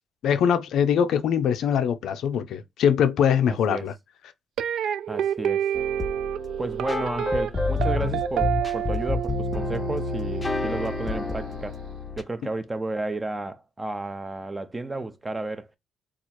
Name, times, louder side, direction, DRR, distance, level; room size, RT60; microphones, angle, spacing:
voice 1, 0.2-3.9, left 8 dB, 75° left, 0.4 m, -22 dB
voice 2, 3.5-3.9 5.1-5.7 6.6-11.8 12.2-15.7, right 2 dB, 20° right, 0.6 m, -32 dB
sound 1, 4.6-11.7, right 10 dB, 75° right, 0.3 m, -29 dB
sound 2, 5.7-12.2, left 3 dB, 20° left, 0.6 m, -29 dB
3.0 x 2.4 x 4.2 m
cardioid pair, 90°, 0 cm